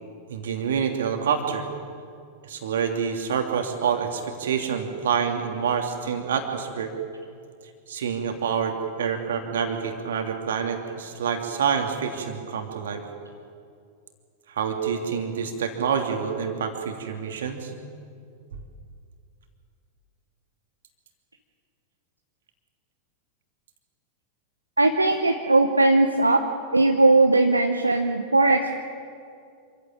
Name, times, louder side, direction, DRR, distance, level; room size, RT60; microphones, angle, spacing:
voice 1, 0.3-1.7 2.4-6.9 7.9-13.0 14.5-17.7, right 7 dB, 60° right, 4 dB, 2.9 m, -27 dB
voice 2, 24.8-26.4 26.7-28.8, right 2 dB, 85° right, 5 dB, 1.1 m, -19 dB
26.5 x 15.5 x 8.9 m, 2.4 s
figure-of-eight pair, 90°, 0 cm